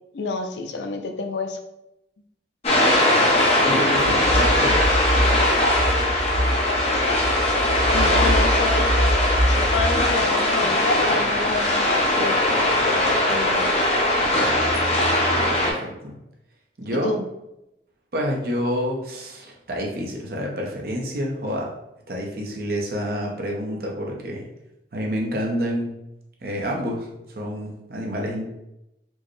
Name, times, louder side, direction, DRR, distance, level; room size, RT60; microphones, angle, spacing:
voice 1, 0.1-1.6 6.7-7.3 7.9-13.7 16.9-17.2, left 3 dB, 80° left, 5 dB, 0.4 m, -29 dB
sound 1, 2.6-15.7, left 1 dB, 35° left, 0.7 m, -20 dB
voice 2, 3.7-5.1 15.4-16.1 16.8-17.2 18.1-21.7 22.1-24.5 24.9-25.9 26.4-27.1 27.3-28.5, equal, 55° right, -1 dB, 0.7 m, -28 dB
sound 2, 3.9-10.1, equal, 10° right, 0.6 m, -24 dB
4.5 x 2.1 x 3.1 m, 0.87 s
head